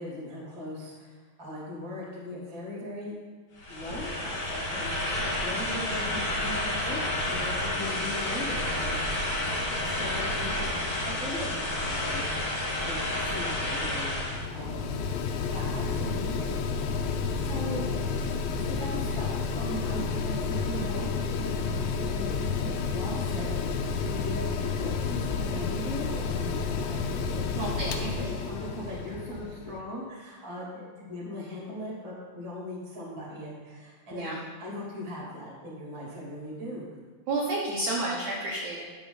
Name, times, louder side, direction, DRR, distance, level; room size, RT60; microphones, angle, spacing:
voice 1, 0.0-3.2 3.7-9.4 9.7-10.7 11.0-12.5 12.8-15.0 15.5-16.7 17.4-17.9 18.6-27.0 27.3-27.4 27.8-36.8, left 1 dB, 15° right, -4 dB, 1.2 m, -39 dB
sound 1, 3.6-14.5, left 1 dB, 50° left, 2.9 m, -30 dB
Mechanical fan, 13.5-29.8, left 5 dB, 85° left, 3.0 m, -31 dB
voice 2, 27.6-28.1 34.1-34.3 37.3-38.8, right 2 dB, 75° right, -3 dB, 1.7 m, -31 dB
11.0 x 6.9 x 4.1 m, 1.5 s
omnidirectional pair, 5.1 m